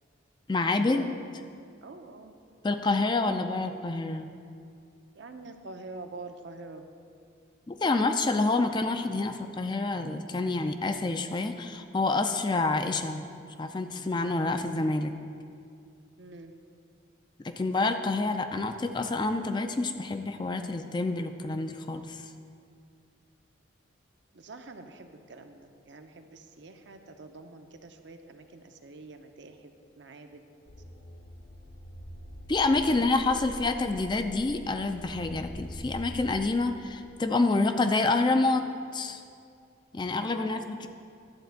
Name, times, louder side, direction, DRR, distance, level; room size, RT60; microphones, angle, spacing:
voice 1, 0.5-1.1 2.6-4.3 7.7-13.2 13.6-15.1 17.4-22.3 32.5-38.6 38.9-39.2 39.9-40.9, left 3 dB, 20° left, 7 dB, 0.3 m, -27 dB
voice 2, 1.8-2.3 5.1-6.8 16.2-16.5 24.3-29.7 30.0-30.5 32.9-33.1 40.3-40.5, right 3 dB, 60° right, 6 dB, 0.7 m, -46 dB
sound 1, 30.7-36.6, equal, 50° left, 0.7 m, -44 dB
11.5 x 4.2 x 8.0 m, 2.4 s
head